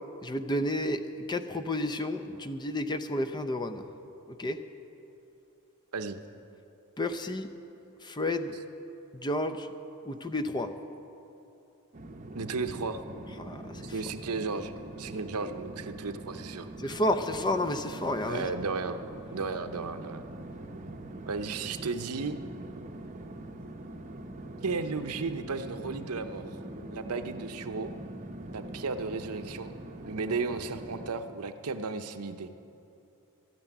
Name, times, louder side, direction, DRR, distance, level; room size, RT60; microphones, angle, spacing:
voice 1, 0.2-3.9 4.3-4.6 7.0-7.5 8.0-8.6 9.1-9.7 10.0-10.7 13.4-13.9 16.8-18.5, left 1 dB, 20° left, 9 dB, 0.6 m, -31 dB
sound 1, 11.9-31.1, right 1 dB, 35° right, 0.8 m, -43 dB
voice 2, 12.3-13.0 13.8-14.7 15.0-16.7 18.2-19.0 19.3-20.2 21.3-22.4 24.6-26.6 26.9-28.0 28.5-29.7 30.1-32.5, right 4 dB, 85° right, 9 dB, 0.7 m, -34 dB
13.0 x 9.5 x 9.1 m, 2.8 s
head